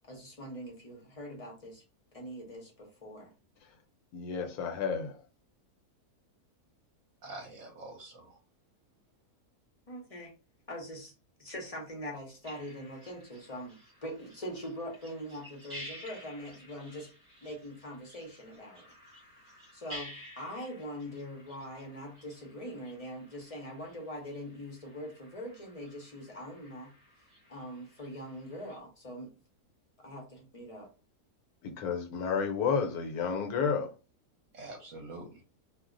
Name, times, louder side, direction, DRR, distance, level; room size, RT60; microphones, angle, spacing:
voice 1, 0.1-1.8 2.1-3.3 9.9-10.3 10.7-11.1 11.4-13.8 14.0-17.1 17.4-18.9 19.7-26.9 27.5-29.3 30.0-30.9, equal, 35° left, 0.6 m, -42 dB
voice 2, 4.1-5.1 31.6-33.9, left 6 dB, 75° left, 1.2 m, -31 dB
voice 3, 7.2-8.4 34.5-35.4, right 2 dB, 60° right, 1.0 m, -45 dB
sound 1, 12.4-28.8, equal, 30° right, 1.2 m, -52 dB
2.7 x 2.0 x 3.7 m
omnidirectional pair, 1.6 m